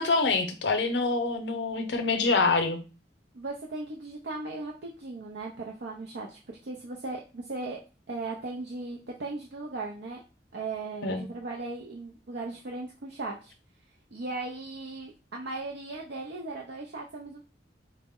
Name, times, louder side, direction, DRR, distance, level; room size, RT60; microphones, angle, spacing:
voice 1, 0.0-2.8 11.0-11.3, left 3 dB, 75° left, 7 dB, 0.6 m, -26 dB
voice 2, 3.3-7.8 8.1-10.2 10.5-13.5 14.1-17.4, right 3 dB, 70° right, -1 dB, 0.5 m, -37 dB
4.1 x 2.0 x 3.6 m, 0.33 s
head